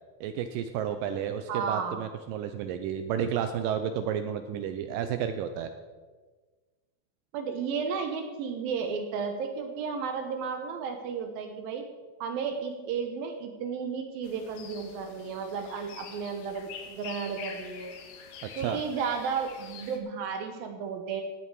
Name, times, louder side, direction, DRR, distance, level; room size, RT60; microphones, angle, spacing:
voice 1, 0.2-5.7 18.4-18.8, right 8 dB, 90° right, 8 dB, 1.9 m, -31 dB
voice 2, 1.5-2.0 7.3-11.9 12.2-17.9 18.6-21.2, right 6 dB, 75° right, 5 dB, 2.5 m, -33 dB
sound 1, 14.2-20.0, left 6 dB, 75° left, 3.0 m, -46 dB
17.5 x 8.5 x 4.7 m, 1.4 s
omnidirectional pair, 4.6 m